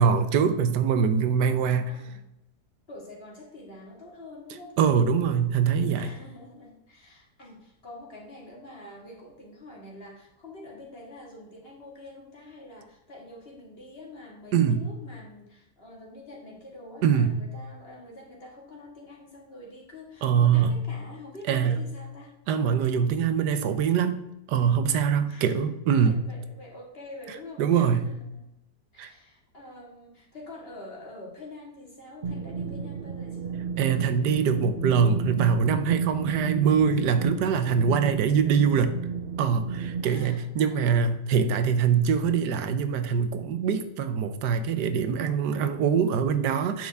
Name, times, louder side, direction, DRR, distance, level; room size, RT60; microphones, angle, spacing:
voice 1, 0.0-1.9 4.8-6.1 14.5-14.9 17.0-17.4 20.2-20.8 21.5-21.8 22.5-26.2 27.6-28.0 29.0-29.1 33.8-39.0 39.4-46.9, right 7 dB, 85° right, 10 dB, 1.3 m, -23 dB
voice 2, 1.9-2.2 2.9-4.8 5.9-22.3 25.3-28.5 28.9-33.6 36.5-36.7 40.0-40.8, left 2 dB, 35° left, -2 dB, 2.2 m, -46 dB
sound 1, 32.2-40.0, right 6 dB, 45° right, 0.9 m, -32 dB
9.0 x 6.8 x 3.5 m, 0.85 s
omnidirectional pair, 1.7 m